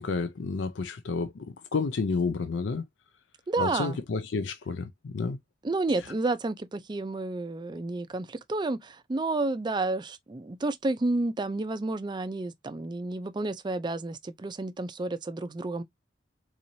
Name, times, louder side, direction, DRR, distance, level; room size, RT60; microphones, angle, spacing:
voice 1, 0.0-2.9 3.6-5.4 6.0-6.1, left 4 dB, 85° left, 0.5 m, -30 dB
voice 2, 3.5-4.0 5.6-15.8, right 2 dB, 25° right, 0.4 m, -30 dB
4.0 x 2.9 x 2.6 m
head